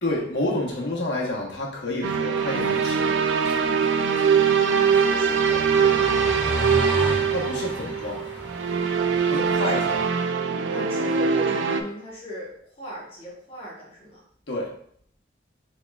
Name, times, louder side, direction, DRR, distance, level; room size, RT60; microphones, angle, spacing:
voice 1, 0.0-3.1 7.3-8.2 9.3-10.0 14.5-14.7, left 1 dB, 70° left, -2 dB, 1.2 m, -29 dB
sound 1, 2.0-11.8, right 6 dB, 85° right, 0.4 m, -22 dB
sound 2, 2.5-10.0, equal, 15° right, 1.5 m, -34 dB
voice 2, 4.7-6.3 9.6-10.0 10.7-14.2, left 1 dB, 30° left, -4 dB, 1.3 m, -38 dB
5.7 x 3.5 x 2.4 m, 0.63 s
head